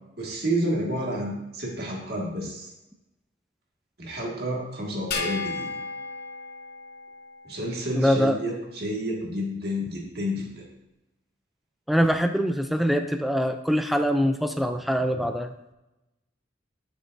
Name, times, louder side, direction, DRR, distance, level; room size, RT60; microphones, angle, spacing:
voice 1, 0.2-2.7 4.0-5.7 7.4-10.7, equal, 55° right, -2 dB, 2.0 m, -30 dB
sound 1, 5.1-7.7, left 4 dB, 55° left, 0.7 m, -34 dB
voice 2, 8.0-8.4 11.9-15.7, equal, ahead, 7 dB, 0.4 m, -24 dB
10.5 x 6.7 x 2.7 m, 0.94 s
head